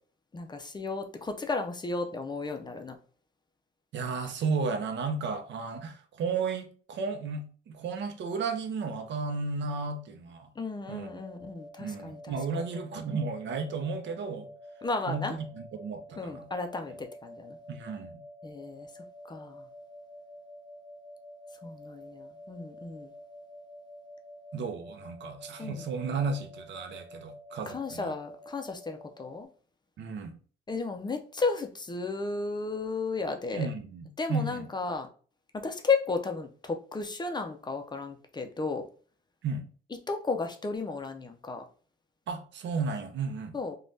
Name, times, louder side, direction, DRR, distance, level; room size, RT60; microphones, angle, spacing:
voice 1, 0.3-3.0 10.6-12.4 14.8-15.4 16.2-17.6 18.4-18.9 19.3-19.6 21.6-23.1 25.6-25.9 27.7-29.5 30.7-33.7 34.2-35.1 35.5-38.9 40.1-41.7 43.5-43.8, left 4 dB, 20° left, 0.4 m, -33 dB
voice 2, 3.9-10.5 10.9-11.2 11.8-14.5 15.1-16.5 17.7-18.2 24.5-28.1 30.0-30.4 33.5-34.7 39.4-39.7 42.3-43.5, right 4 dB, 65° right, 0.6 m, -33 dB
sound 1, 10.8-29.5, equal, 20° right, 0.9 m, -49 dB
3.2 x 2.2 x 2.6 m
cardioid pair, 90°, 20 cm